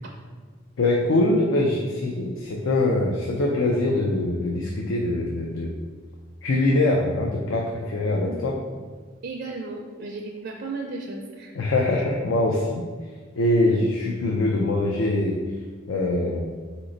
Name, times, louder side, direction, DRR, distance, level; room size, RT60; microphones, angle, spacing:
voice 1, 0.8-5.7 6.4-8.6 11.6-12.8 13.3-15.4 15.9-16.5, left 2 dB, 80° left, 0 dB, 0.5 m, -23 dB
voice 2, 8.1-8.6 9.2-11.6 11.8-12.0, right 3 dB, 55° right, 1 dB, 0.4 m, -35 dB
4.2 x 3.0 x 3.8 m, 1.5 s
head